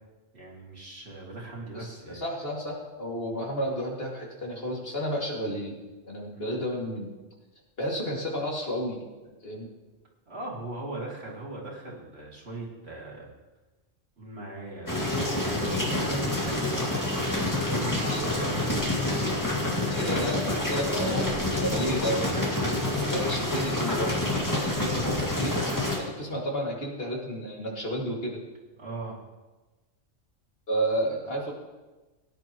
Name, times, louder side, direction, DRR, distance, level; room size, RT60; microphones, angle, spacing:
voice 1, 0.3-2.2 6.3-6.5 10.3-13.3 14.2-18.4 20.0-20.2 25.9-26.2 28.8-29.2, right 2 dB, 55° right, -4 dB, 2.9 m, -39 dB
voice 2, 1.7-5.8 6.0-7.1 7.8-9.0 9.2-9.7 18.1-18.6 19.9-24.2 24.5-25.5 26.0-28.4 30.7-31.5, equal, 50° left, -2 dB, 2.6 m, -32 dB
sound 1, 14.9-26.0, left 1 dB, 15° left, 2.1 m, -28 dB
18.0 x 9.9 x 3.1 m, 1.2 s
omnidirectional pair, 1.3 m